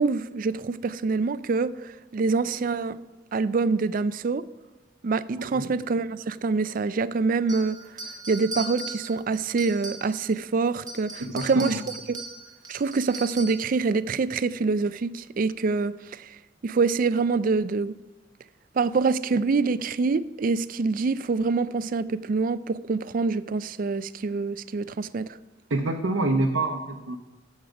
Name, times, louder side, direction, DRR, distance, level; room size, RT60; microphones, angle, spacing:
voice 1, 0.0-3.0 3.3-4.4 5.0-7.8 8.3-11.8 12.1-12.2 12.7-16.4 16.6-17.9 18.8-25.3, right 4 dB, 45° right, 16 dB, 0.4 m, -25 dB
voice 2, 5.4-5.7 11.2-11.8 25.7-27.2, right 2 dB, 90° right, 1 dB, 0.8 m, -26 dB
sound 1, 7.5-10.4 10.7-13.7, right 2 dB, 20° right, 0.9 m, -39 dB
13.0 x 7.4 x 5.1 m, 1.1 s
head